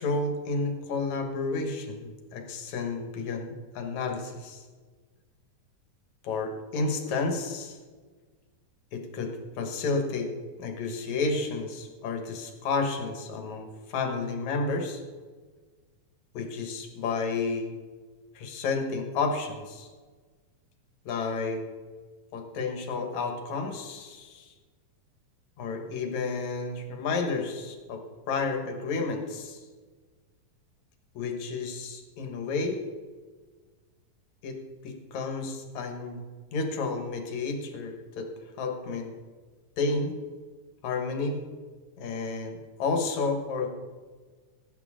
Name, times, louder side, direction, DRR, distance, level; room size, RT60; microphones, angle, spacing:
voice 1, 0.0-4.6 6.2-7.8 8.9-10.3 10.6-15.0 16.3-17.7 18.3-19.9 21.1-21.6 22.3-24.5 25.6-28.0 28.3-29.6 31.1-32.8 34.4-34.6 34.8-36.2 36.5-38.3 38.6-39.1 39.8-40.2 40.8-41.4 42.0-43.7, left 3 dB, 60° left, 4 dB, 2.7 m, -31 dB
20.0 x 9.3 x 3.7 m, 1.4 s
omnidirectional pair, 3.9 m